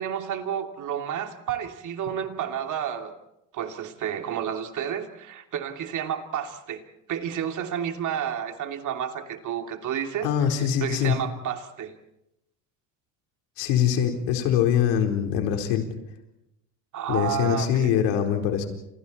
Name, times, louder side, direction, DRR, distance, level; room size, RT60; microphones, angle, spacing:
voice 1, 0.0-3.1 3.5-10.3 10.8-12.0 16.9-18.0, right 9 dB, 50° right, 5 dB, 2.9 m, -31 dB
voice 2, 10.2-11.2 13.6-15.9 17.1-18.6, left 9 dB, 80° left, 4 dB, 4.3 m, -23 dB
30.0 x 27.5 x 4.4 m, 0.86 s
supercardioid pair, 110°, 39 cm